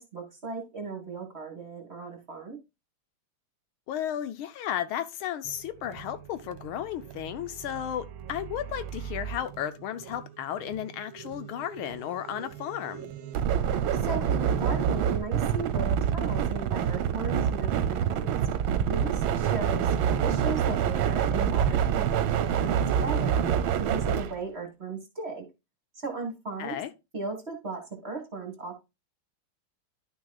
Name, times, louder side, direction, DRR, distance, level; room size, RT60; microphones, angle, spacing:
voice 1, 0.0-2.6 14.0-18.3 18.9-19.9 20.2-23.4 23.8-25.4 26.0-26.8 27.1-28.8, right 4 dB, 30° right, 1.8 m, -36 dB
voice 2, 3.9-13.1 26.6-26.9, left 11 dB, 75° left, 1.5 m, -34 dB
sound 1, 5.4-24.4, right 8 dB, 75° right, 1.4 m, -28 dB
11.0 x 6.2 x 2.3 m
omnidirectional pair, 2.4 m